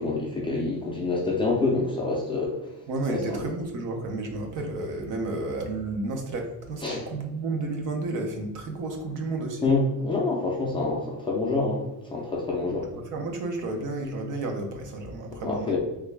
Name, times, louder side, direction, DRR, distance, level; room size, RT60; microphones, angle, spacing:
voice 1, 0.0-2.6 3.1-3.4 6.8-7.0 9.6-11.8 12.1-12.9 15.4-15.8, left 3 dB, 15° left, -4 dB, 0.4 m, -26 dB
voice 2, 2.9-9.7 12.7-15.8, right 2 dB, 55° right, 3 dB, 0.7 m, -32 dB
3.2 x 2.2 x 3.2 m, 1.0 s
cardioid pair, 165°, 38 cm